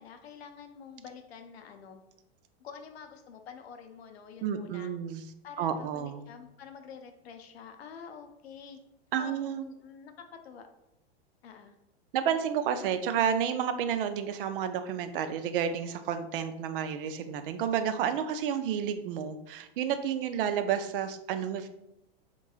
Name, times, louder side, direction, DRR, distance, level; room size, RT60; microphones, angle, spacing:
voice 1, 0.0-2.0 2.6-4.9 5.4-8.8 9.2-10.1 10.4-10.7 11.4-11.7, left 7 dB, 80° left, 6 dB, 0.6 m, -47 dB
voice 2, 4.4-5.2 5.6-6.2 9.1-9.6 12.1-21.7, right 8 dB, 60° right, 10 dB, 0.4 m, -30 dB
3.7 x 2.9 x 2.3 m, 0.85 s
hypercardioid pair, 110°, 31 cm